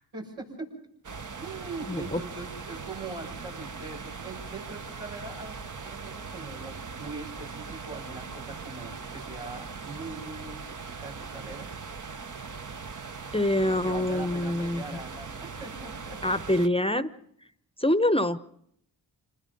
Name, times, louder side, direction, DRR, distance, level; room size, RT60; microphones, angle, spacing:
voice 1, 0.1-0.5 1.4-11.7 13.6-16.5, right 3 dB, 90° right, -3 dB, 7.0 m, -42 dB
sound 1, 1.0-16.7, right 5 dB, 45° right, 1.1 m, -40 dB
voice 2, 1.9-2.2 13.3-14.8 16.2-17.1 17.8-18.4, left 1 dB, 15° left, 14 dB, 0.9 m, -25 dB
26.5 x 20.5 x 5.4 m, 0.72 s
cardioid pair, 40°, 44 cm